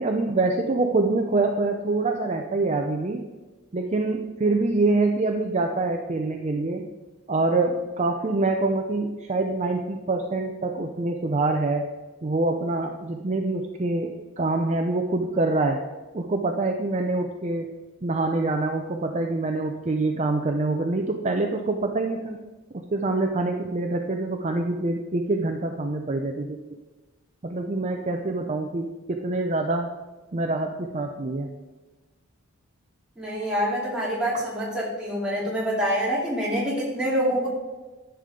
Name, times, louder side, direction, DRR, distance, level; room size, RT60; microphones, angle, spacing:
voice 1, 0.0-3.2 3.7-6.9 7.3-11.9 12.2-15.8 16.1-17.7 18.0-22.4 22.7-26.6 27.4-29.9 30.3-31.5, right 2 dB, 30° right, 3 dB, 0.5 m, -25 dB
voice 2, 33.2-37.5, equal, 5° right, -6 dB, 2.7 m, -26 dB
11.0 x 7.0 x 3.8 m, 1.2 s
head